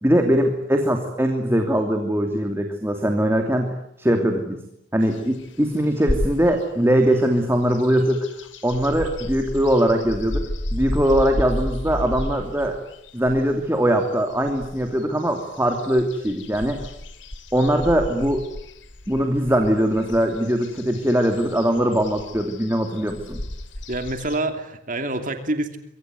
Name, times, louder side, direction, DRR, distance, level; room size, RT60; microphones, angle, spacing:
voice 1, 0.0-4.6 4.9-8.3 8.6-10.4 10.7-12.8 13.1-16.8 17.5-18.5 19.1-23.4, equal, 10° right, 4 dB, 2.8 m, -21 dB
sound 1, 5.0-6.7 7.1-24.4, left 1 dB, 65° left, 2.6 m, -33 dB
voice 2, 23.9-25.8, right 2 dB, 40° right, 6 dB, 2.6 m, -26 dB
25.5 x 24.0 x 9.7 m, 0.76 s
head